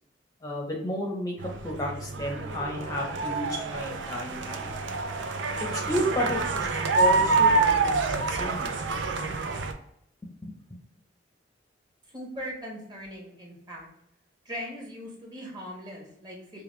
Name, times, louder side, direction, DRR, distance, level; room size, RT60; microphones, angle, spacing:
voice 1, 0.4-4.7 5.7-8.8 10.2-10.8, left 1 dB, 20° left, -1 dB, 0.6 m, -32 dB
sound 1, 1.4-9.7, right 3 dB, 85° right, 0.5 m, -27 dB
voice 2, 12.1-13.9 14.4-16.6, equal, 25° right, -2 dB, 1.2 m, -40 dB
4.9 x 2.2 x 3.1 m, 0.74 s
head